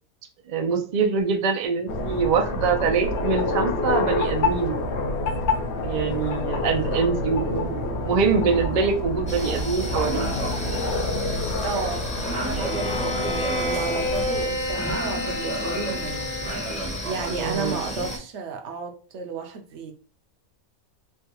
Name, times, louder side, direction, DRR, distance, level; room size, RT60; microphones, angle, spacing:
voice 1, 0.5-4.8 5.8-10.2 17.3-17.8, right 5 dB, 80° right, 0.3 m, -24 dB
sound 1, 1.9-14.5, left 2 dB, 65° left, 0.8 m, -28 dB
sound 2, 9.3-18.2, equal, 10° left, 0.5 m, -31 dB
voice 2, 11.6-16.3 16.8-19.9, right 5 dB, 65° right, 0.8 m, -33 dB
Bowed string instrument, 12.5-17.0, left 1 dB, 90° left, 1.2 m, -30 dB
3.3 x 2.3 x 2.8 m
omnidirectional pair, 1.5 m